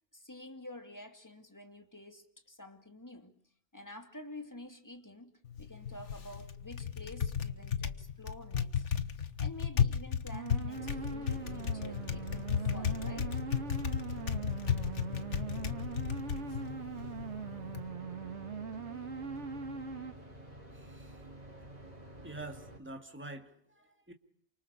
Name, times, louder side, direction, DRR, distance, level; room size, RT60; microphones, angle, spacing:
voice 1, 0.1-3.4 3.7-5.3 5.6-8.9 9.2-13.4, left 1 dB, 15° left, 2.5 m, -49 dB
Typing, 5.5-17.9, left 7 dB, 85° left, 1.7 m, -35 dB
sound 1, 10.3-20.1, right 5 dB, 80° right, 2.0 m, -41 dB
sound 2, 10.7-22.8, right 1 dB, 35° right, 4.5 m, -49 dB
voice 2, 20.7-21.2 22.2-24.1, right 2 dB, 10° right, 2.3 m, -47 dB
28.5 x 25.5 x 6.9 m
omnidirectional pair, 1.2 m